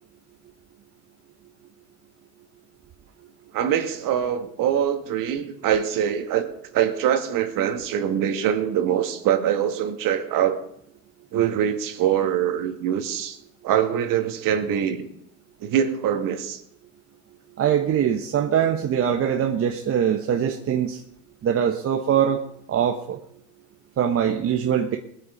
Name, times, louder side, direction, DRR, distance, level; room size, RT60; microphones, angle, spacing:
voice 1, 3.5-10.6 11.3-13.4 13.6-15.1 15.6-16.6, right 9 dB, 45° right, 7 dB, 2.1 m, -23 dB
voice 2, 17.6-21.0 21.4-22.4 22.7-23.2 24.0-25.0, right 9 dB, 30° right, 3 dB, 1.2 m, -22 dB
21.0 x 8.4 x 5.2 m, 0.71 s
supercardioid pair, 110°, 46 cm